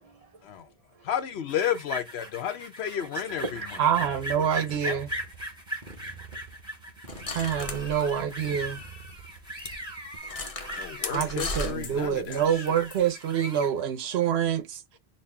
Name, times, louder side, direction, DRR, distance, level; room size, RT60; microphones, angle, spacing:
voice 1, 0.0-1.1 2.4-2.5 2.9-3.8, right 2 dB, 40° right, 0.8 m, -41 dB
voice 2, 1.0-3.4 4.0-5.0 7.1-7.4 10.8-12.8, left 9 dB, 80° left, 1.0 m, -33 dB
sound 1, 1.5-13.7, right 1 dB, 5° right, 1.6 m, -39 dB
Motorcycle, 3.3-10.2, right 4 dB, 55° right, 1.1 m, -47 dB
voice 3, 3.8-5.1 7.3-8.8 11.1-14.8, right 9 dB, 80° right, 0.9 m, -26 dB
sound 2, 7.1-8.9 9.2-9.3 9.6-9.8 10.2-13.0, left 2 dB, 35° left, 0.8 m, -36 dB
4.1 x 2.3 x 3.2 m
omnidirectional pair, 1.1 m